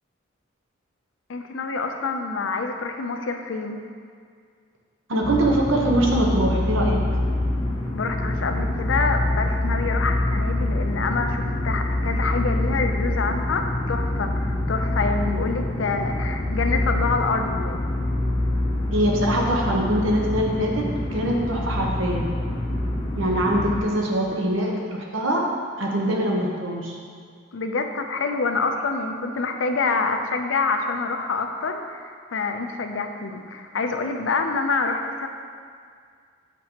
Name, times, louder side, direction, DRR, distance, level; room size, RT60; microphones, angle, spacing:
voice 1, 1.3-3.8 8.0-17.8 27.5-35.3, left 4 dB, 75° left, 5 dB, 0.5 m, -26 dB
voice 2, 5.1-7.0 18.9-20.9 21.1-22.4 23.1-25.5 25.8-26.9, right 1 dB, 75° right, -1 dB, 1.0 m, -23 dB
sound 1, 5.2-23.8, left 1 dB, 25° left, 0.5 m, -25 dB
7.4 x 5.2 x 2.9 m, 2.1 s
head